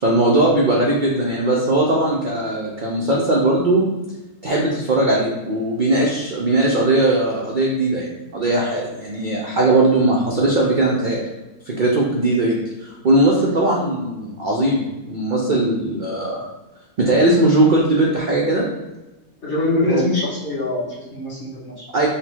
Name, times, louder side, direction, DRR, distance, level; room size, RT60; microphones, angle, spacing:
voice 1, 0.0-3.9 4.4-11.2 11.7-12.6 13.0-16.5 17.0-18.6 19.9-20.0 21.9-22.1, right 2 dB, 60° right, -3 dB, 0.5 m, -19 dB
voice 2, 19.4-21.8, left 2 dB, 40° left, -9 dB, 1.5 m, -23 dB
5.5 x 2.2 x 3.5 m, 1.1 s
omnidirectional pair, 1.6 m